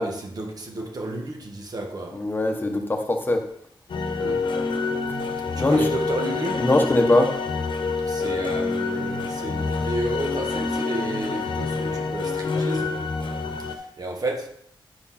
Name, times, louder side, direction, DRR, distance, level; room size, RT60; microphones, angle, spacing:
voice 1, 0.0-2.2 4.2-4.5 5.5-6.7 8.0-13.0 13.6-14.5, right 2 dB, 50° right, 1.5 m, -32 dB
voice 2, 2.1-3.4 5.6-5.9 6.6-7.3, left 2 dB, 25° left, 1.0 m, -21 dB
sound 1, 3.9-13.7, left 4 dB, 75° left, 1.0 m, -27 dB
9.6 x 4.5 x 5.7 m
wide cardioid pair, 125°, 8 cm